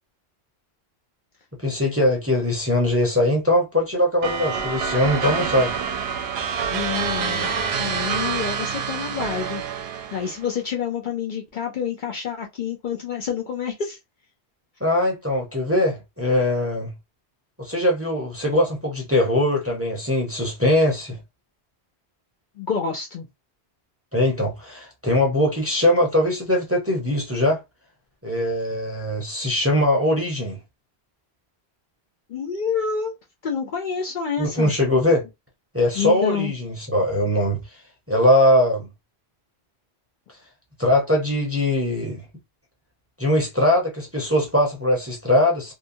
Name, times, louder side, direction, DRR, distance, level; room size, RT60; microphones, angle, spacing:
voice 1, 1.6-5.7 14.8-16.9 17.6-21.2 24.1-27.6 28.2-30.6 34.4-35.2 35.7-37.6 38.1-38.9 40.8-42.2 43.2-45.7, left 1 dB, 15° right, 0.6 m, -21 dB
sound 1, 4.2-10.5, right 6 dB, 75° right, 0.8 m, -27 dB
voice 2, 6.7-7.5 7.8-9.6 10.1-14.0 22.6-23.3 32.3-33.1 33.4-34.7 35.9-36.5, left 6 dB, 55° left, 0.6 m, -28 dB
2.7 x 2.1 x 2.6 m
omnidirectional pair, 1.1 m